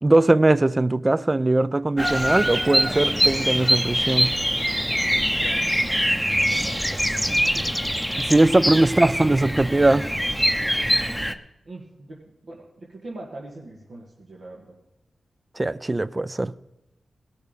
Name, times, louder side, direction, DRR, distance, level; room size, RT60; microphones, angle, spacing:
voice 1, 0.0-4.3 8.2-10.1 15.6-16.5, right 2 dB, 30° right, 0.5 m, -20 dB
Bird vocalization bird call bird song, 2.0-11.3, equal, ahead, 0.8 m, -23 dB
voice 2, 4.8-7.7 10.7-10.9 11.6-14.7, right 2 dB, 75° right, 1.8 m, -43 dB
18.0 x 6.5 x 5.1 m
cardioid pair, 40°, 0 cm